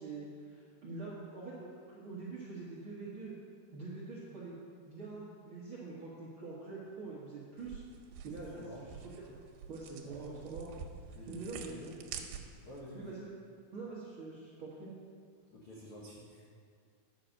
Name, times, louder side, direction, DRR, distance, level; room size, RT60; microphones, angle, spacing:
voice 1, 0.0-3.3 3.7-4.6 4.8-7.8 8.2-8.9 9.2-9.3 9.7-10.7 11.0-11.8 12.9-13.4 13.7-14.9, right 3 dB, 55° right, -7 dB, 1.5 m, -45 dB
sound 1, 7.6-12.8, right 7 dB, 90° right, 2.7 m, -48 dB
voice 2, 8.4-8.9 10.0-10.5 11.1-12.0 12.6-13.2 15.5-16.6, equal, 70° left, -5 dB, 1.2 m, -49 dB
9.2 x 5.8 x 6.5 m, 2.1 s
omnidirectional pair, 4.2 m